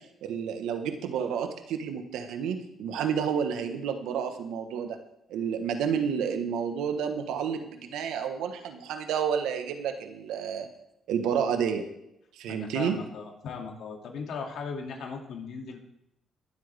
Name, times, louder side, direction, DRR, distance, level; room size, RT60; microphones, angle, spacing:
voice 1, 0.2-5.0 5.3-10.7 11.1-11.8 12.3-13.0, right 7 dB, 90° right, 7 dB, 1.3 m, -30 dB
voice 2, 12.5-15.8, left 5 dB, 70° left, 1 dB, 2.5 m, -38 dB
21.0 x 7.9 x 3.5 m, 0.82 s
cardioid pair, 90°, 0 cm